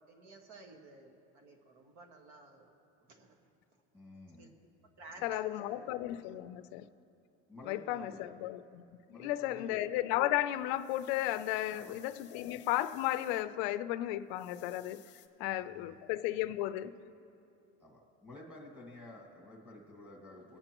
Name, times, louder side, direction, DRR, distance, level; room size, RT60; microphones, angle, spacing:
voice 1, 0.1-2.7 3.0-3.4 4.4-4.5 4.8-5.9, right 2 dB, 60° right, 1.6 m, -54 dB
voice 2, 3.9-4.5 5.1-5.3 7.5-8.3 9.1-9.8 11.7-12.0 15.4-15.9 17.8-20.6, left 2 dB, 5° right, 1.9 m, -52 dB
voice 3, 5.2-6.9 7.7-8.8 9.1-15.0 15.4-16.9, left 14 dB, 65° left, 0.6 m, -34 dB
sound 1, 10.5-13.4 14.3-15.3, left 11 dB, 35° left, 0.8 m, -60 dB
23.0 x 8.8 x 3.0 m
cardioid pair, 150°, 33 cm